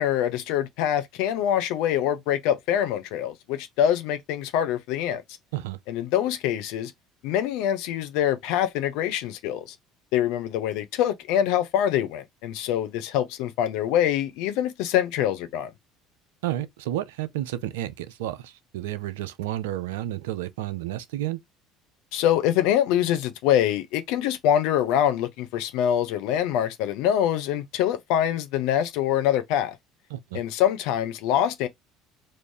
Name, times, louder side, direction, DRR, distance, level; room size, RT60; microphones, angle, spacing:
voice 1, 0.0-5.2 5.9-6.9 7.2-9.6 10.1-15.7 22.1-29.7 30.3-31.7, left 10 dB, 70° left, 0.5 m, -24 dB
voice 2, 16.4-21.4 30.1-30.4, right 14 dB, 80° right, 0.4 m, -31 dB
3.1 x 2.5 x 3.5 m
hypercardioid pair, 70°, 0 cm